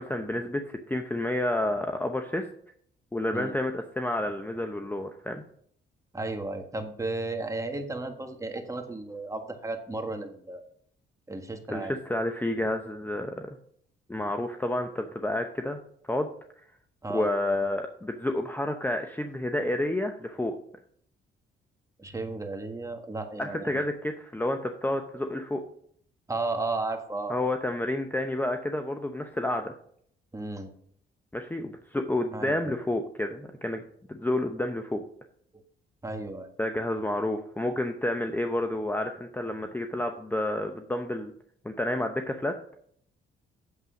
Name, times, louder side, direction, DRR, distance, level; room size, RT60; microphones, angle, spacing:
voice 1, 0.0-2.5 3.1-5.4 11.7-13.5 14.1-15.8 16.1-16.3 17.1-20.6 23.4-25.6 27.3-29.7 31.3-33.8 34.1-35.0 36.6-41.3 41.6-42.6, left 1 dB, 10° left, 6 dB, 0.8 m, -30 dB
voice 2, 6.1-10.6 11.3-12.0 17.0-17.3 22.0-23.8 26.3-27.4 30.3-30.7 32.3-32.7 36.0-36.5, right 2 dB, 15° right, 5 dB, 1.6 m, -34 dB
8.4 x 7.5 x 5.1 m, 0.64 s
cardioid pair, 90°, 20 cm